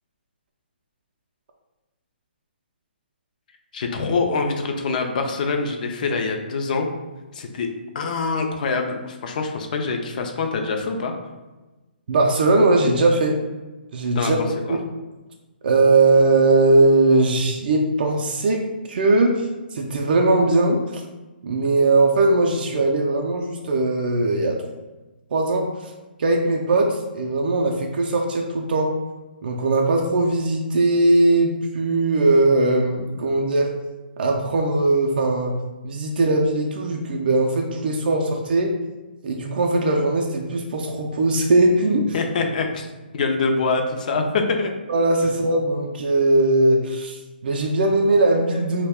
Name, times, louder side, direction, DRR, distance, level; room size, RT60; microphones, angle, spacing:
voice 1, 3.7-6.9 7.3-7.7 7.9-11.1 14.1-14.3 14.7-14.8 42.1-42.9 43.1-44.7, left 4 dB, 50° left, 4 dB, 0.4 m, -24 dB
voice 2, 12.1-13.4 13.9-14.4 15.6-21.0 21.4-24.6 25.3-25.9 26.2-28.9 29.4-33.7 34.2-35.5 35.8-38.7 39.2-42.1 44.9-48.9, right 2 dB, 60° right, 1 dB, 0.3 m, -19 dB
2.3 x 2.1 x 3.4 m, 1.1 s
hypercardioid pair, 150°, 6 cm